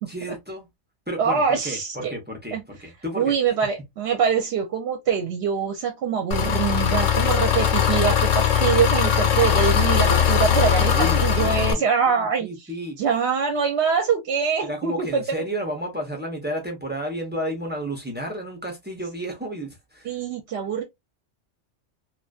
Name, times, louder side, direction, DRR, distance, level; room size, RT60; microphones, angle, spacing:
voice 1, 0.1-0.7 1.1-3.3 10.9-13.0 14.6-20.1, equal, 15° right, 0.3 m, -32 dB
voice 2, 1.2-2.1 2.5-2.6 3.2-12.7 13.0-15.2 20.0-20.8, right 6 dB, 65° right, 0.8 m, -24 dB
Engine, 6.3-11.7, left 9 dB, 90° left, 1.0 m, -20 dB
2.5 x 2.2 x 2.3 m
omnidirectional pair, 1.3 m